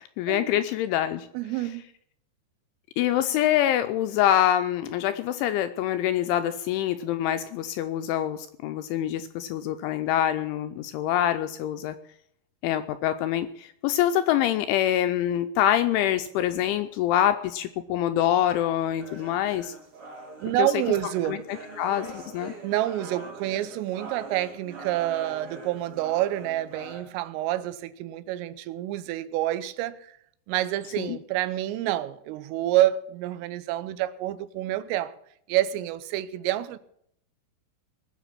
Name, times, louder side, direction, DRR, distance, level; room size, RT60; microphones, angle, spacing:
voice 1, 0.0-1.3 3.0-12.0 12.6-19.7 20.6-20.7 21.3-21.4 21.8-22.5 31.0-31.2, left 11 dB, 80° left, 2.8 m, -25 dB
voice 2, 1.3-1.8 20.4-21.4 22.6-30.2 30.5-35.1 35.5-36.8, right 14 dB, 80° right, 3.4 m, -28 dB
sound 1, 19.0-27.0, right 3 dB, 30° right, 4.1 m, -42 dB
20.0 x 7.0 x 7.5 m
omnidirectional pair, 5.9 m